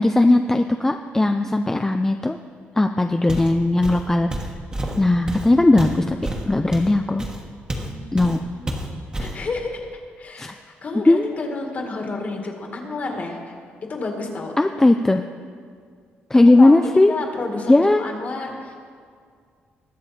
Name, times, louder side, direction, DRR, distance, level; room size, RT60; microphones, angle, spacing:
voice 1, 0.0-2.4 2.8-4.3 5.0-6.2 6.5-7.2 8.1-8.4 10.4-10.5 11.1-11.3 14.6-15.2 16.3-17.1 17.7-18.0, left 2 dB, 10° left, 6 dB, 0.4 m, -17 dB
Walk footsteps, 3.3-3.6 3.8-7.9 8.2-8.4 8.7-9.4, right 1 dB, 20° right, 1.4 m, -29 dB
voice 2, 7.8-8.3 8.6-8.7 9.2-13.5 13.9-14.5 16.3-18.7, left 3 dB, 40° left, 2 dB, 1.9 m, -31 dB
21.0 x 7.1 x 4.2 m, 2.1 s
cardioid pair, 120°, 4 cm